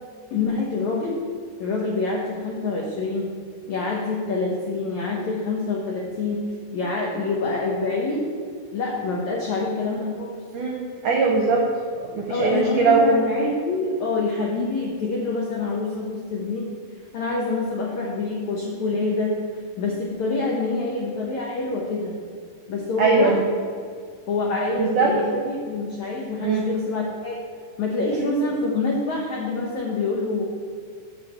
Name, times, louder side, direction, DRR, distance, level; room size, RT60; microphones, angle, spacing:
voice 1, 0.3-1.2 1.6-3.3 3.7-6.4 6.7-8.3 8.7-10.3 12.3-16.7 17.1-19.3 19.8-22.2 22.7-23.6 24.3-27.4 27.8-30.4, left 3 dB, 75° left, -2 dB, 1.7 m, -26 dB
voice 2, 10.5-11.6 12.0-13.2 23.0-23.4 24.8-25.1 26.4-26.7 28.1-28.3, right 4 dB, 70° right, -1 dB, 1.9 m, -21 dB
9.6 x 5.0 x 7.8 m, 2.1 s
omnidirectional pair, 4.8 m